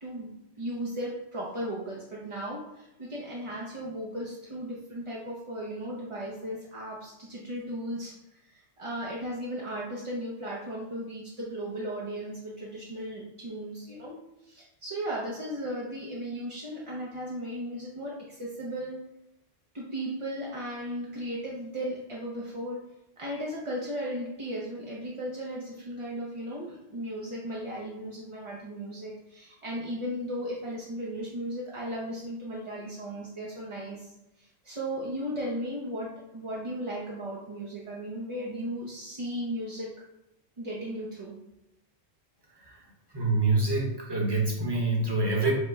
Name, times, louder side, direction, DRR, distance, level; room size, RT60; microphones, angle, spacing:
voice 1, 0.0-19.0 19.7-22.8 23.2-39.9 40.6-41.4, equal, 40° right, -4 dB, 0.5 m, -36 dB
voice 2, 43.1-45.5, right 3 dB, 20° right, -2 dB, 0.9 m, -26 dB
4.8 x 2.1 x 4.6 m, 0.87 s
omnidirectional pair, 1.3 m